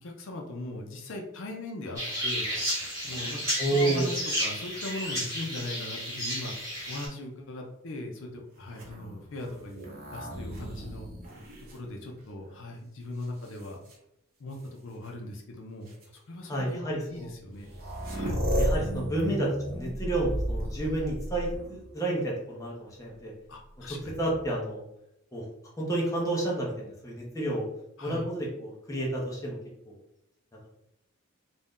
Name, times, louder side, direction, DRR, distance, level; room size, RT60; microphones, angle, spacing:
voice 1, 0.0-2.5 3.0-6.5 6.9-11.1 11.7-13.8 14.4-14.6 14.8-17.7 18.1-18.4 23.5-24.2 28.0-28.2, left 1 dB, 60° left, 1 dB, 0.5 m, -39 dB
sound 1, 2.0-7.1, equal, 15° right, 1.0 m, -32 dB
voice 2, 3.6-4.1 16.5-17.3 18.6-23.3 23.9-24.8 25.3-25.5 25.8-27.7 28.0-29.6 29.9-30.0, right 1 dB, 15° left, -4 dB, 0.6 m, -30 dB
sound 2, 8.7-12.5 13.2-13.9 15.0-15.1 15.9-16.0 17.2-17.3 17.5-21.9 23.9-24.6, equal, 40° right, 0.6 m, -34 dB
2.6 x 2.1 x 3.5 m, 0.81 s
head